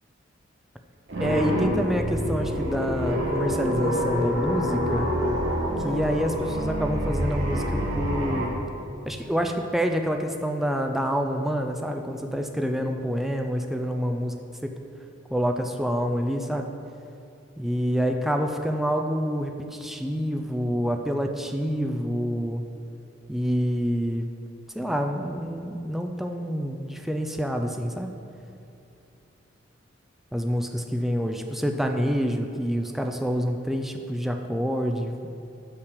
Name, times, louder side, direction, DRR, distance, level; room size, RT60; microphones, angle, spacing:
sound 1, 1.1-8.5, equal, 65° right, 1.4 m, -27 dB
voice 1, 1.2-5.1 5.8-8.5 9.1-14.7 15.3-16.7 17.6-22.6 23.3-24.3 24.7-28.1 30.3-35.3, equal, ahead, 4 dB, 0.3 m, -27 dB
6.4 x 5.7 x 5.1 m, 2.7 s
head